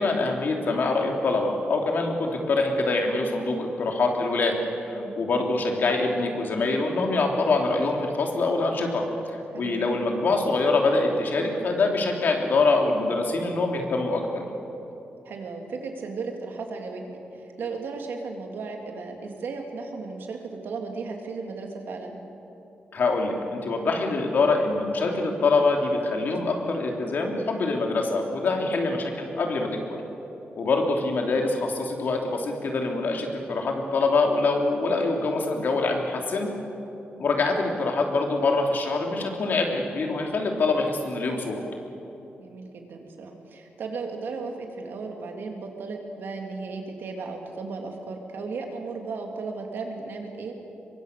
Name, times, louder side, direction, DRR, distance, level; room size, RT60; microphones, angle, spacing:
voice 1, 0.0-4.5 4.9-14.4 22.9-29.8 30.5-36.5 37.2-41.6, left 3 dB, 60° left, 1 dB, 3.3 m, -24 dB
voice 2, 9.5-9.9 15.2-22.2 28.7-28.9 42.4-50.5, right 4 dB, 80° right, 2 dB, 3.2 m, -35 dB
24.5 x 23.0 x 6.9 m, 3.0 s
wide cardioid pair, 125°, 4 cm